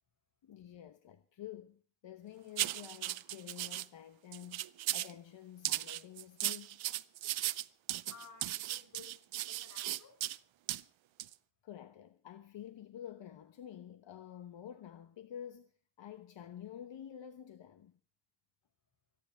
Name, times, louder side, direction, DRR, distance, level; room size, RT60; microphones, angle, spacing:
voice 1, 0.4-6.8 11.6-17.9, left 10 dB, 70° left, 1.1 m, -49 dB
sound 1, 2.6-3.9 4.3-5.1 5.6-10.4 10.7-10.8 11.2-11.3, right 14 dB, 80° right, 0.7 m, -36 dB
voice 2, 8.1-10.4, left 5 dB, 40° left, 5.6 m, -56 dB
24.5 x 9.8 x 5.1 m
wide cardioid pair, 150°, 46 cm